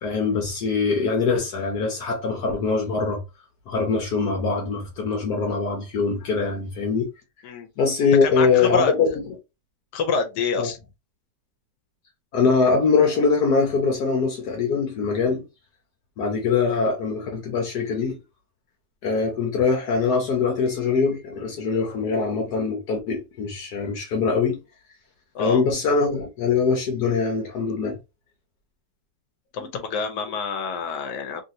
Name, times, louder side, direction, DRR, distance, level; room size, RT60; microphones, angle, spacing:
voice 1, 0.0-3.2 3.7-7.1 7.8-9.1 10.6-10.7 12.3-15.4 16.2-18.2 19.0-24.6 25.4-28.0 29.6-29.7, left 4 dB, 70° left, 1.3 m, -23 dB
voice 2, 8.2-8.9 9.9-10.8 25.3-25.6 29.5-31.4, left 5 dB, 90° left, 1.3 m, -27 dB
3.1 x 2.7 x 2.7 m
omnidirectional pair, 1.8 m